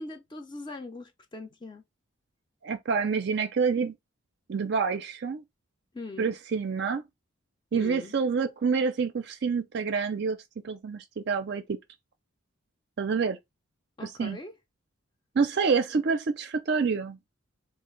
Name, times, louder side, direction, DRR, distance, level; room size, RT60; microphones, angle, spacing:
voice 1, 0.0-1.8 5.9-6.4 7.7-8.1 14.0-14.5, left 2 dB, 20° left, 0.5 m, -41 dB
voice 2, 2.6-4.0 4.5-5.4 6.2-7.1 7.7-10.4 10.6-11.8 13.0-13.4 14.0-14.4 15.4-17.2, right 5 dB, 55° right, 0.4 m, -27 dB
3.8 x 2.4 x 3.2 m
head